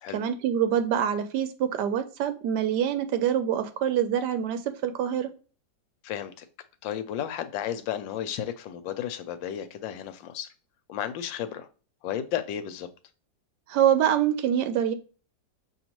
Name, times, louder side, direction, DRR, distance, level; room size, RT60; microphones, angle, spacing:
voice 1, 0.1-5.3 13.7-14.9, right 9 dB, 70° right, 1.1 m, -25 dB
voice 2, 6.0-6.5 6.8-10.5 10.9-11.7 12.0-12.9, left 10 dB, 80° left, 1.3 m, -33 dB
6.5 x 2.8 x 2.9 m
omnidirectional pair, 2.0 m